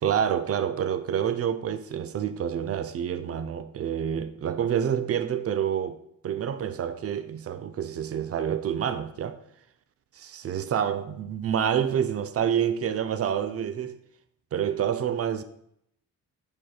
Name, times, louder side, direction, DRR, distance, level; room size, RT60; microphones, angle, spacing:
voice 1, 0.0-6.0 6.2-9.4 10.1-14.0 14.5-15.4, right 9 dB, 35° right, 0.4 m, -28 dB
5.2 x 4.4 x 2.3 m
hypercardioid pair, 50°, 41 cm